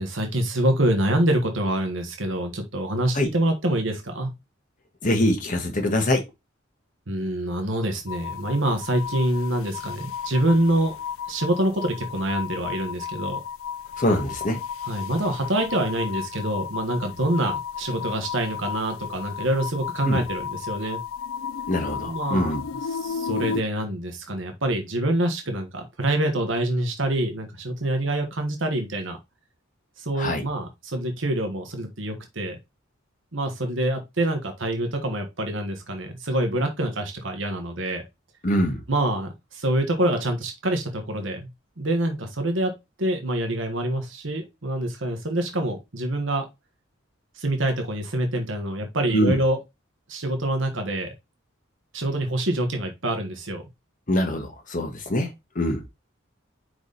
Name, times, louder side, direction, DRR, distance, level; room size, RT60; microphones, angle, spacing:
voice 1, 0.0-4.3 7.1-11.0 11.3-13.4 14.9-21.0 22.0-22.6 22.9-29.2 30.0-32.6 33.3-38.0 38.9-41.5 41.8-42.7 43.0-46.5 47.3-49.6 50.1-51.1 51.9-53.6, right 1 dB, 65° right, 1.5 m, -26 dB
voice 2, 5.0-6.2 14.0-14.6 20.0-20.2 21.7-22.6 30.2-30.5 38.4-38.8 49.1-49.4 54.1-55.3 55.5-55.8, left 1 dB, 40° left, 1.5 m, -23 dB
sound 1, 8.1-23.6, left 7 dB, 85° left, 0.5 m, -33 dB
5.1 x 4.8 x 4.1 m
head